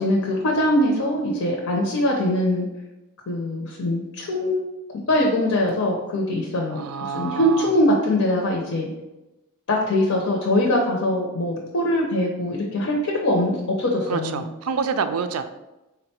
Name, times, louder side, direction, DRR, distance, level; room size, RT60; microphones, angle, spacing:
voice 1, 0.0-2.7 3.3-4.6 5.1-8.9 9.7-14.4, left 1 dB, 75° left, -1 dB, 0.7 m, -22 dB
voice 2, 6.7-7.7 14.1-15.4, right 6 dB, 85° right, 10 dB, 0.4 m, -27 dB
3.9 x 2.1 x 4.2 m, 0.98 s
head